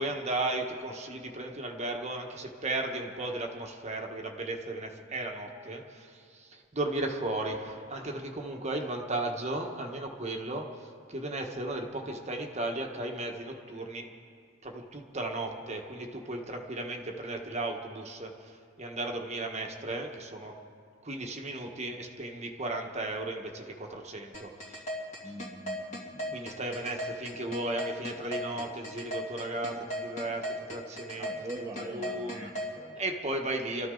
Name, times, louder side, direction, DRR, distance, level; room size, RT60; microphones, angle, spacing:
voice 1, 0.0-14.1 14.6-20.5 21.0-24.8 25.2-25.3 26.3-31.3 31.6-32.5 33.0-33.9, right 2 dB, 35° right, 2 dB, 1.3 m, -35 dB
sound 1, 24.3-32.7, equal, 40° left, 2.7 m, -36 dB
voice 2, 25.2-26.4 31.2-33.0, right 1 dB, 15° right, -2 dB, 1.1 m, -43 dB
25.5 x 13.5 x 3.9 m, 2.2 s
head